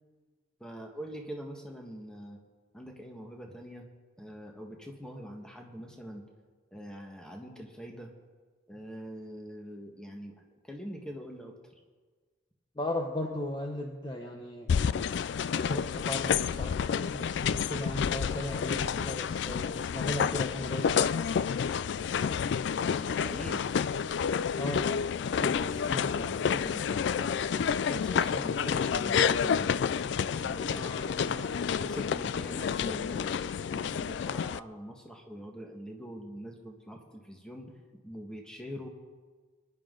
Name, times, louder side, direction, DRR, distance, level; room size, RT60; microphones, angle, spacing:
voice 1, 0.6-2.4 2.7-3.9 4.2-6.2 6.7-8.1 8.7-11.5 22.9-23.7 25.3-27.4 27.8-29.7 30.3-33.3 33.7-37.7 38.0-38.9, equal, 5° left, 1 dB, 1.5 m, -43 dB
voice 2, 12.8-15.0 15.5-21.1 24.6-24.9 30.6-31.6, left 1 dB, 20° left, 1 dB, 0.8 m, -37 dB
sound 1, 14.7-34.6, left 7 dB, 60° left, 0.3 m, -29 dB
23.0 x 11.0 x 3.8 m, 1.4 s
head